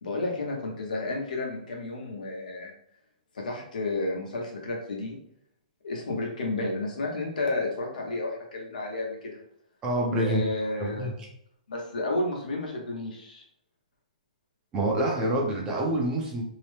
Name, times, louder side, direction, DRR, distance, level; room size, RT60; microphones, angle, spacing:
voice 1, 0.0-2.7 3.3-5.2 5.8-9.4 10.2-11.1 11.7-13.4, left 2 dB, 90° left, 0 dB, 0.9 m, -31 dB
voice 2, 9.8-10.4 10.8-11.1 14.7-16.4, right 1 dB, 15° right, -1 dB, 0.6 m, -26 dB
2.9 x 2.0 x 3.3 m, 0.71 s
hypercardioid pair, 155°, 4 cm